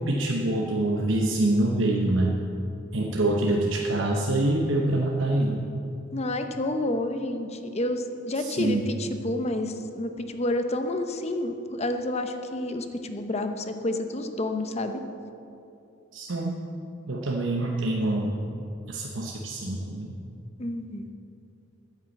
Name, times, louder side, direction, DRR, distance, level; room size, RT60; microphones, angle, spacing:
voice 1, 0.0-2.3 2.9-5.6 8.4-8.8 16.1-16.5 17.1-18.3 18.9-20.1, right 1 dB, 70° right, 0 dB, 0.9 m, -25 dB
voice 2, 6.1-15.0 20.6-21.1, left 1 dB, 35° left, 7 dB, 0.8 m, -29 dB
9.5 x 9.5 x 7.9 m, 2.7 s
head